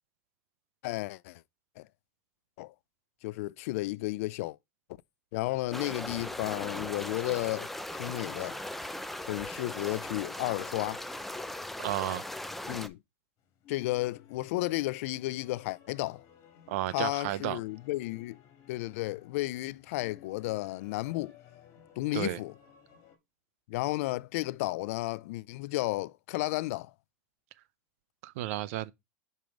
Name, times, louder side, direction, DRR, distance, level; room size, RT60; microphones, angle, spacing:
voice 1, 0.8-1.4 1.8-1.9 2.6-2.7 3.2-4.6 5.3-8.6 9.2-11.0 12.7-13.0 13.7-16.2 16.9-18.4 18.7-21.3 22.0-22.5 23.7-26.9, left 19 dB, 70° left, 0.4 m, -33 dB
sound 1, 5.7-12.9, left 1 dB, ahead, 0.6 m, -39 dB
voice 2, 11.8-12.2 16.7-17.6 22.1-22.4 28.2-28.9, right 15 dB, 65° right, 0.5 m, -32 dB
sound 2, 13.4-23.2, left 9 dB, 50° left, 2.0 m, -57 dB
5.5 x 4.4 x 5.1 m
supercardioid pair, 120°, 8 cm